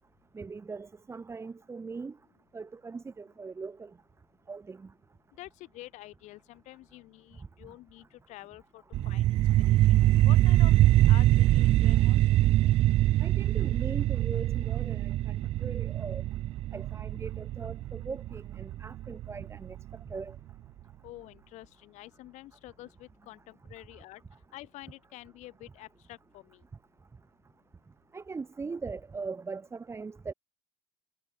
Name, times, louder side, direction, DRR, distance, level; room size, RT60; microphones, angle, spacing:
voice 1, 0.3-2.2 2.5-3.9 4.5-4.9 13.2-15.3 15.6-16.2 16.7-19.8 20.1-20.4 28.1-30.3, right 4 dB, 20° right, 1.1 m, -40 dB
voice 2, 5.4-9.3 9.7-9.9 10.2-10.7 11.1-12.3 21.0-24.2 24.5-26.6, left 17 dB, 60° left, 1.2 m, -48 dB
sound 1, 8.9-19.9, right 15 dB, 45° right, 0.4 m, -24 dB
hypercardioid pair, 90°, 14 cm